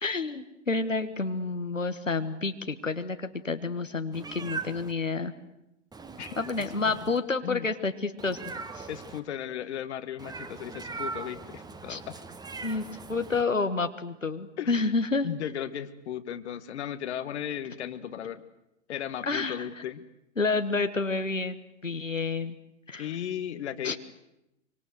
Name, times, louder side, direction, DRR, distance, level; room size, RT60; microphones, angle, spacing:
voice 1, 0.0-5.3 6.4-8.9 11.9-12.0 12.6-15.3 19.3-19.7 20.4-22.6 22.9-23.2 23.8-24.0, left 3 dB, 90° left, 8 dB, 1.5 m, -29 dB
Meow, 4.1-4.9 5.9-7.2 8.2-9.2 10.2-13.4, right 4 dB, 10° right, 1.6 m, -40 dB
voice 2, 8.9-12.2 14.6-14.7 15.2-18.4 18.9-20.0 23.0-24.0, left 10 dB, 60° left, 13 dB, 1.6 m, -36 dB
25.5 x 25.0 x 8.0 m, 0.89 s
figure-of-eight pair, 95°, 37 cm